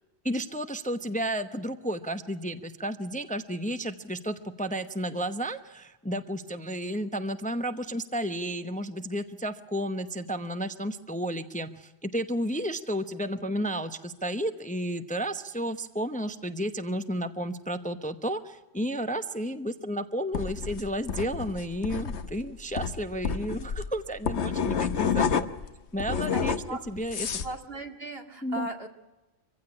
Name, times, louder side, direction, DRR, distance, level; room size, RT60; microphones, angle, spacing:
voice 1, 0.2-25.5 25.9-26.6 26.9-27.4 28.4-28.7, equal, 10° left, 9 dB, 0.8 m, -32 dB
sound 1, 20.3-25.7 26.0-27.5, left 6 dB, 85° left, 1.3 m, -29 dB
voice 2, 26.3-26.8 27.4-28.9, right 2 dB, 65° right, 4 dB, 2.4 m, -37 dB
25.0 x 16.0 x 9.7 m, 1.1 s
omnidirectional pair, 1.1 m